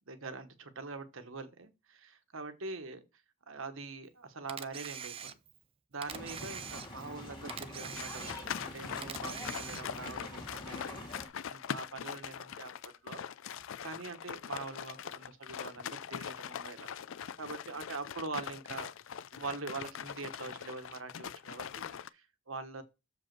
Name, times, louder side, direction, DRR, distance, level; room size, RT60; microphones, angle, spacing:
voice 1, 0.1-3.0 3.5-5.3 5.9-13.3 13.8-16.9 17.4-18.9 19.3-22.8, right 3 dB, 65° right, 1.2 m, -44 dB
Camera, 4.5-5.6 6.0-7.2 7.5-8.6 9.0-10.1, right 8 dB, 25° right, 0.4 m, -44 dB
sound 1, 6.1-11.3, left 2 dB, 20° left, 2.2 m, -45 dB
sound 2, 8.0-22.1, left 8 dB, 65° left, 0.4 m, -42 dB
7.1 x 5.0 x 4.6 m
head